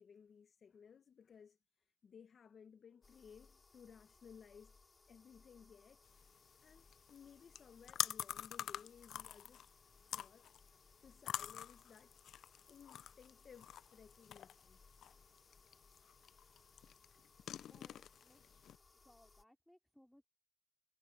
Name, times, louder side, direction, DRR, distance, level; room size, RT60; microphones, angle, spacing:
voice 1, 0.0-4.8 5.1-6.0 6.6-9.7 10.1-10.5 11.0-12.2 12.7-14.8, left 7 dB, 50° left, 1.0 m, -60 dB
sound 1, 3.0-19.4, left 4 dB, 30° left, 4.5 m, -67 dB
sound 2, 6.1-18.8, left 10 dB, 70° left, 0.5 m, -47 dB
voice 2, 17.7-18.4 19.0-20.3, equal, 5° left, 3.6 m, -67 dB
cardioid pair, 90°, 0 cm